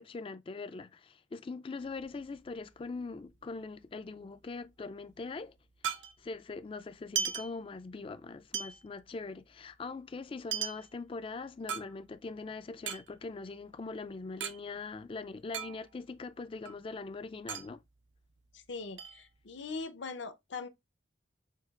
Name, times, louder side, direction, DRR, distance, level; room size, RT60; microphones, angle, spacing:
voice 1, 0.0-5.5 5.9-17.8, left 3 dB, 30° left, 0.3 m, -42 dB
sound 1, 1.8-3.5 3.8-3.9 4.1-6.5 6.9-8.2 8.5-12.4 12.7-14.6 14.9-15.0 15.2-16.2 16.5-18.6 19.0-19.8, right 8 dB, 75° right, 0.6 m, -39 dB
voice 2, 18.7-20.7, left 4 dB, 70° left, 0.7 m, -41 dB
6.4 x 2.4 x 2.3 m
head